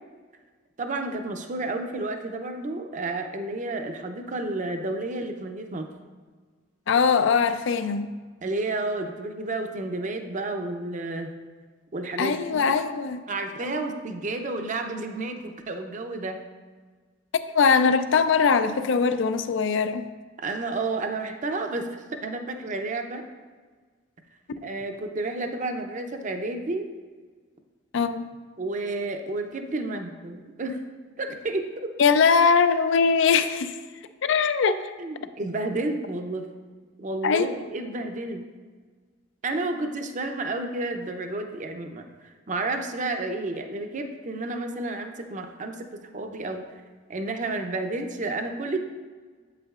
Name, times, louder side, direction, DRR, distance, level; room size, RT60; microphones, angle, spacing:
voice 1, 0.8-5.9 8.4-11.3 11.9-12.7 13.3-16.4 20.4-23.2 24.6-26.9 28.6-30.8 31.2-31.9 35.0-36.5 37.0-38.4 39.4-42.1 42.5-46.6 47.1-48.8, right 2 dB, 40° right, 5 dB, 0.6 m, -31 dB
voice 2, 6.9-8.1 12.2-13.2 13.6-13.8 17.5-20.1 27.9-28.3 32.0-33.7 34.2-34.9 37.2-37.4, left 5 dB, 70° left, 11 dB, 0.4 m, -21 dB
8.2 x 8.0 x 2.4 m, 1.5 s
head